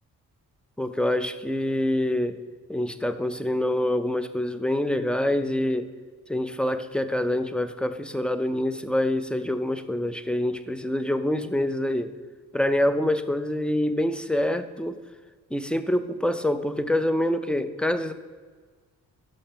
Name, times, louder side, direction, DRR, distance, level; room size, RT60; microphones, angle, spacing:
voice 1, 0.8-2.4 2.7-5.9 6.3-12.1 12.5-14.9 15.5-18.1, left 1 dB, ahead, 11 dB, 0.7 m, -26 dB
6.6 x 5.6 x 6.8 m, 1.4 s
supercardioid pair, 50°, 39 cm